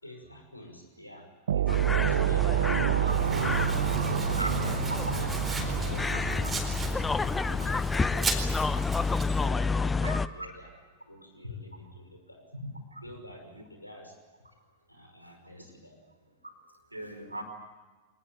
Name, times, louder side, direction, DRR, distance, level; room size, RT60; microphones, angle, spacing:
voice 1, 0.0-3.4 3.7-4.9 5.1-6.5 6.9-8.5 9.4-10.7 11.1-12.5 13.0-14.2 14.9-16.0, equal, 85° left, 3 dB, 6.0 m, -48 dB
sound 1, 1.5-7.9, right 11 dB, 65° right, 0.7 m, -29 dB
sound 2, 1.7-10.3, left 4 dB, 10° left, 0.7 m, -30 dB
Domestic sounds home sounds, 3.1-9.5, right 3 dB, 15° right, 4.3 m, -38 dB
voice 2, 10.0-10.5 11.4-11.5 12.9-13.0 13.5-13.6 15.2-15.3 16.4-16.5 16.9-17.4, right 1 dB, 85° right, 4 dB, 4.6 m, -38 dB
25.0 x 19.5 x 9.1 m, 1.3 s
figure-of-eight pair, 90°, 0 cm